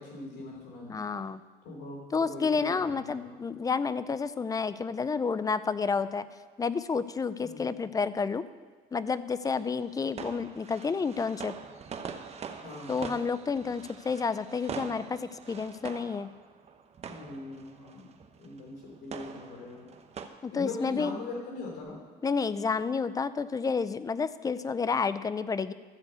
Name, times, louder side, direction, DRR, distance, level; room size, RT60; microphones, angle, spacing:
voice 1, 0.0-1.0 1.6-3.4 7.4-7.7 12.6-13.0 17.0-18.1 18.4-19.9 20.5-22.0, left 3 dB, 90° left, -1 dB, 3.5 m, -41 dB
voice 2, 0.9-1.4 2.1-6.3 6.6-8.4 8.9-11.5 12.9-16.3 20.4-21.2 22.2-25.7, left 5 dB, 20° left, 15 dB, 0.4 m, -30 dB
sound 1, 9.4-20.3, right 6 dB, 40° right, 0.8 m, -44 dB
13.0 x 4.7 x 8.2 m, 1.4 s
cardioid pair, 110°, 17 cm